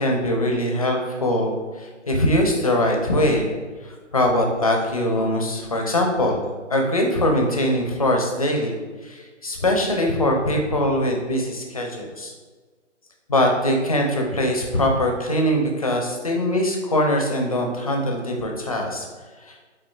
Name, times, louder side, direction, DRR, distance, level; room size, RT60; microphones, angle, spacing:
voice 1, 0.0-3.5 3.8-6.4 6.7-12.3 13.3-19.1 19.4-19.6, left 1 dB, 30° left, 1 dB, 0.4 m, -22 dB
5.4 x 3.5 x 2.3 m, 1.4 s
figure-of-eight pair, 140°, 37 cm